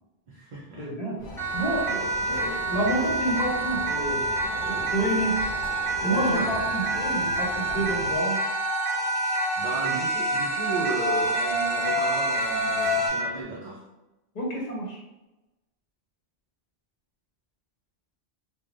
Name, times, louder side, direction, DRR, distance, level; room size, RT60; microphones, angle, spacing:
voice 1, 0.3-0.9 6.0-6.5 9.6-13.8, right 2 dB, 55° right, -6 dB, 0.6 m, -34 dB
voice 2, 0.8-1.2 1.5-4.2 4.7-5.4 6.0-8.4 9.9-10.0 14.3-15.0, right 1 dB, 45° left, -3 dB, 0.8 m, -29 dB
sound 1, 1.2-8.2, left 1 dB, 20° left, 1.1 m, -40 dB
sound 2, 1.3-13.1, left 3 dB, 75° left, 0.8 m, -33 dB
Siren, 1.4-13.4, right 3 dB, ahead, 0.6 m, -28 dB
3.1 x 2.2 x 2.5 m, 1.0 s
omnidirectional pair, 1.1 m